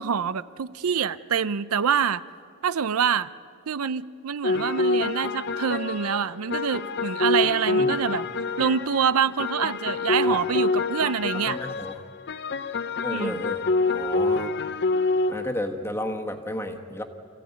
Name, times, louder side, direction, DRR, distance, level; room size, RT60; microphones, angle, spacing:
voice 1, 0.0-2.2 2.6-3.3 3.7-8.2 8.6-11.6 13.1-13.4, right 7 dB, 85° right, 16 dB, 0.6 m, -26 dB
sound 1, 4.4-9.1 9.4-15.5, left 3 dB, 50° left, 0.7 m, -26 dB
voice 2, 11.4-11.9 13.0-14.5 15.3-17.0, left 1 dB, 10° left, 4 dB, 1.4 m, -32 dB
26.5 x 15.5 x 9.5 m, 2.3 s
head